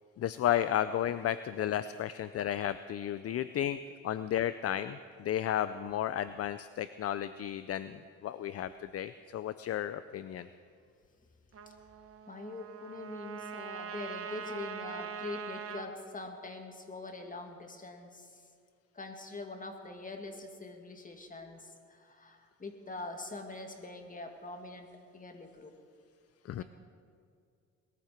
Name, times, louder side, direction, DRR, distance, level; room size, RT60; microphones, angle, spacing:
voice 1, 0.2-10.5 26.4-26.6, left 11 dB, 55° left, 13 dB, 0.5 m, -33 dB
Trumpet, 11.5-15.9, right 7 dB, 50° right, 1.3 m, -43 dB
voice 2, 12.3-18.4 18.9-24.9 25.1-25.7 26.6-26.7, left 2 dB, 25° left, 4 dB, 2.2 m, -43 dB
20.5 x 14.5 x 4.5 m, 2.3 s
cardioid pair, 90°, 30 cm